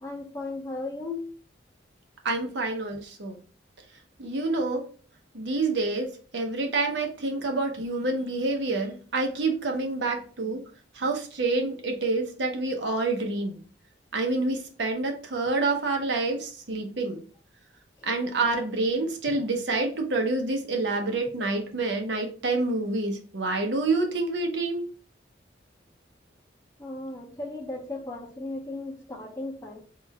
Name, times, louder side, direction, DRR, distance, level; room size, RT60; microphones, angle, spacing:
voice 1, 0.0-1.3 26.8-29.8, left 2 dB, 20° left, -1 dB, 1.0 m, -36 dB
voice 2, 2.2-3.4 4.2-4.8 5.3-10.6 11.0-13.6 14.1-17.2 18.0-24.9, right 3 dB, 70° right, 3 dB, 0.8 m, -27 dB
3.8 x 2.5 x 4.2 m, 0.40 s
head